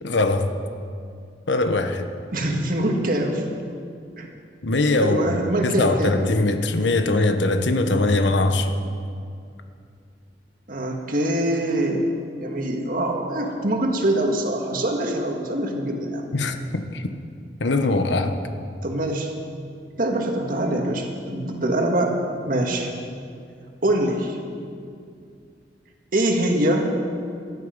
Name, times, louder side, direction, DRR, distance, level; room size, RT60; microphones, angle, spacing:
voice 1, 0.0-0.5 1.5-2.1 4.6-5.4 5.6-8.8 16.3-17.1 17.6-18.4, left 2 dB, 85° left, 7 dB, 1.0 m, -21 dB
voice 2, 2.3-3.4 4.2-4.3 5.0-6.2 10.7-12.1 12.4-16.2 18.8-19.3 20.0-22.2 22.5-22.9 23.8-24.4 26.1-26.9, right 1 dB, 50° right, 2 dB, 1.9 m, -24 dB
18.0 x 13.0 x 5.3 m, 2.4 s
head